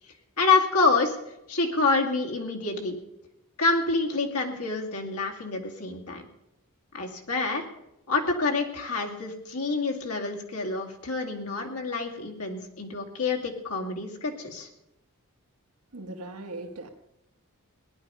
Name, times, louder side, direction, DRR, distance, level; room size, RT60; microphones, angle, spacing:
voice 1, 0.4-1.2 1.5-3.0 3.6-6.2 6.9-7.6 8.1-14.7, left 3 dB, 85° left, 2 dB, 2.3 m, -27 dB
voice 2, 15.9-16.9, right 2 dB, 85° right, 4 dB, 1.3 m, -39 dB
18.0 x 11.0 x 5.5 m, 0.89 s
head